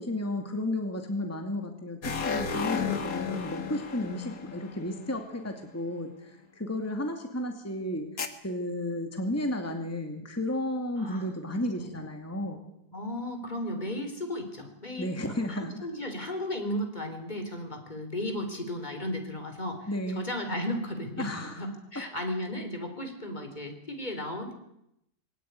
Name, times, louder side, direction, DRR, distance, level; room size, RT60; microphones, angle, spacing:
voice 1, 0.0-12.6 15.0-15.9 19.9-20.3 21.2-21.6, left 1 dB, 10° left, 4 dB, 2.4 m, -33 dB
sound 1, 2.0-5.5 8.2-8.3, left 6 dB, 55° left, 2.1 m, -33 dB
voice 2, 12.9-15.1 15.5-19.9 20.2-24.5, left 1 dB, 25° left, 5 dB, 4.0 m, -35 dB
21.5 x 18.0 x 9.6 m, 0.82 s
omnidirectional pair, 1.8 m